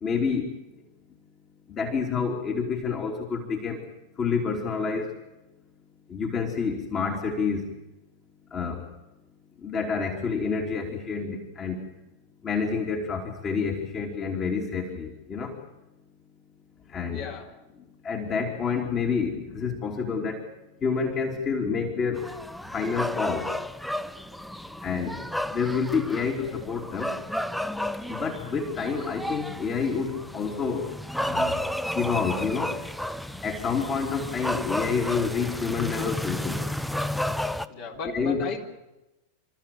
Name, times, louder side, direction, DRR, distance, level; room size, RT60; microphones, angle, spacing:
voice 1, 0.0-0.5 1.7-3.8 4.2-5.1 6.1-7.7 8.5-8.8 9.6-11.8 12.4-15.5 16.9-17.3 18.0-20.4 20.8-22.2 22.7-23.5 24.8-25.2 25.5-27.1 28.2-30.9 31.2-31.6 31.9-32.7 33.4-36.6 38.0-38.4, left 5 dB, 25° left, 2 dB, 3.2 m, -28 dB
voice 2, 17.1-17.6 37.7-38.6, left 5 dB, 45° left, 1 dB, 3.7 m, -35 dB
sound 1, 22.1-37.7, equal, ahead, 0.8 m, -32 dB
28.5 x 14.0 x 8.8 m, 0.96 s
figure-of-eight pair, 90°, 0 cm